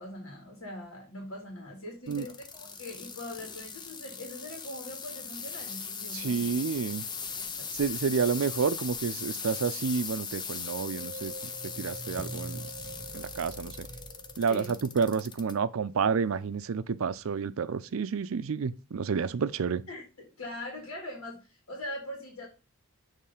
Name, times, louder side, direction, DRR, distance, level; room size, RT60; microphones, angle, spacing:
voice 1, 0.0-6.6 7.4-7.7 11.9-12.0 14.5-14.7 19.9-22.5, left 1 dB, 70° left, 2.1 m, -42 dB
sound 1, 2.1-15.5 16.1-16.5 17.2-17.3, left 6 dB, 20° left, 0.5 m, -39 dB
voice 2, 6.1-7.0 7.7-11.3 11.8-12.6 13.1-13.9 14.4-19.8, right 5 dB, 70° right, 0.4 m, -30 dB
sound 2, 10.6-15.2, right 1 dB, 25° right, 0.6 m, -44 dB
6.6 x 3.3 x 5.5 m
head